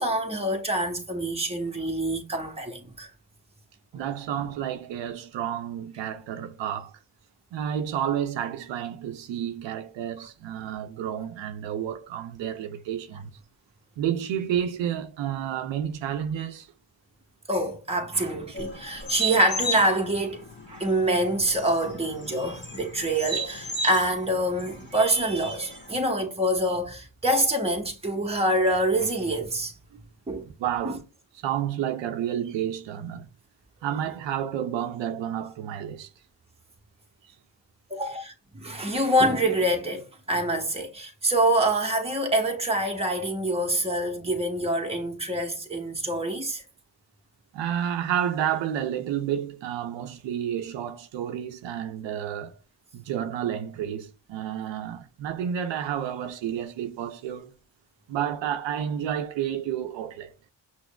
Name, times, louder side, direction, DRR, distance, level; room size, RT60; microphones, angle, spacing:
voice 1, 0.0-3.1 3.9-4.0 17.5-29.7 30.3-30.5 30.8-31.0 37.9-46.6, right 1 dB, 15° right, 0.9 m, -26 dB
voice 2, 3.9-6.9 7.5-13.3 14.0-16.7 30.6-31.0 31.4-33.3 33.8-36.1 47.5-52.6 52.9-57.5 58.1-60.3, right 9 dB, 75° right, 0.5 m, -30 dB
sound 1, 18.5-25.9, right 1 dB, 25° left, 1.5 m, -35 dB
5.9 x 2.0 x 2.2 m
supercardioid pair, 60°, 45 cm